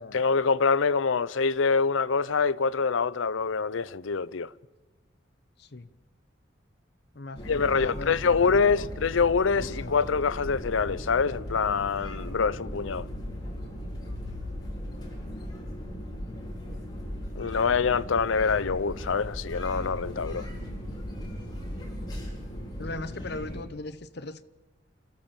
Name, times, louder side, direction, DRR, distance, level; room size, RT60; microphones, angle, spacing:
voice 1, 0.1-4.5 7.4-13.1 17.4-20.5, left 5 dB, 90° left, 0.6 m, -25 dB
voice 2, 5.6-5.9 7.1-8.9 9.5-10.1 22.8-24.4, left 2 dB, 60° left, 0.8 m, -39 dB
sound 1, 7.3-23.6, equal, 20° left, 4.8 m, -37 dB
28.5 x 14.0 x 7.2 m
head